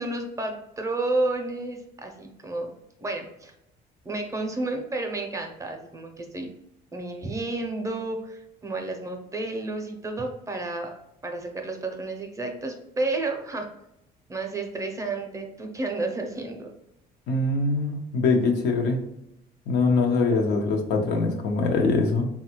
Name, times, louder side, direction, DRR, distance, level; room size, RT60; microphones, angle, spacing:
voice 1, 0.0-2.7 3.0-3.5 4.0-6.5 6.9-10.9 11.2-13.7 14.3-16.7, right 2 dB, 20° right, 3 dB, 0.5 m, -31 dB
voice 2, 17.3-19.0 19.7-22.3, left 3 dB, 80° left, 2 dB, 0.7 m, -23 dB
3.4 x 2.3 x 2.9 m, 0.82 s
cardioid pair, 110°, 17 cm